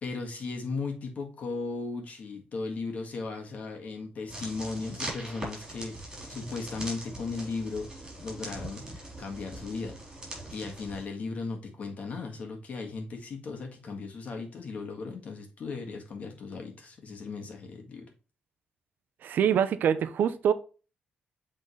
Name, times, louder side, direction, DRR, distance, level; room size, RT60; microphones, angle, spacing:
voice 1, 0.0-10.0 10.5-18.1, left 4 dB, 45° left, 1.9 m, -37 dB
sound 1, 4.3-11.0, right 1 dB, 20° right, 3.7 m, -41 dB
voice 2, 19.2-20.5, right 8 dB, 70° right, 0.6 m, -25 dB
7.7 x 3.9 x 3.2 m
cardioid pair, 135°, 3 cm